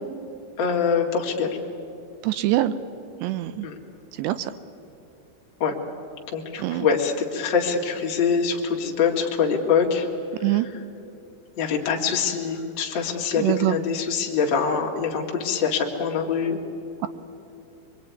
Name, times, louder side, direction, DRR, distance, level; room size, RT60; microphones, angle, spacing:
voice 1, 0.6-1.6 3.6-3.8 5.6-5.7 6.3-10.1 10.4-10.8 11.6-16.6, left 6 dB, 35° left, 0 dB, 1.9 m, -24 dB
voice 2, 2.2-2.7 3.2-3.7 4.2-4.5 6.6-6.9 10.4-10.7 13.4-13.8, right 15 dB, 80° right, 12 dB, 2.6 m, -23 dB
24.5 x 23.0 x 9.6 m, 2.8 s
omnidirectional pair, 5.6 m